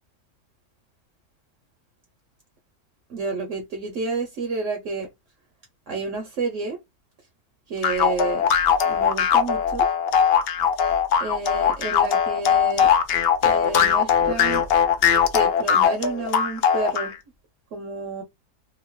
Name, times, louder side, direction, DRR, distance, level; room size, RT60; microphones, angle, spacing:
voice 1, 3.1-5.1 5.9-6.8 7.7-8.5 8.9-9.9 11.2-12.9 13.4-14.6 15.3-17.1 17.7-18.2, right 3 dB, 65° right, 0.9 m, -30 dB
sound 1, 7.8-17.1, left 7 dB, 75° left, 0.5 m, -20 dB
2.7 x 2.5 x 2.9 m
omnidirectional pair, 1.6 m